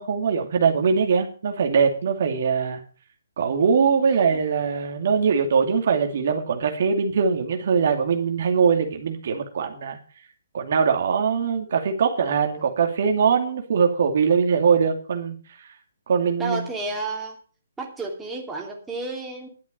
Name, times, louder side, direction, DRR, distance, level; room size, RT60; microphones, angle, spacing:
voice 1, 0.0-2.8 3.4-10.0 10.5-15.4 16.1-16.6, right 6 dB, 55° right, 4 dB, 2.4 m, -22 dB
voice 2, 16.4-17.4 17.8-19.5, right 3 dB, 5° right, -1 dB, 2.9 m, -31 dB
12.0 x 8.3 x 7.4 m, 0.40 s
hypercardioid pair, 155°, 0 cm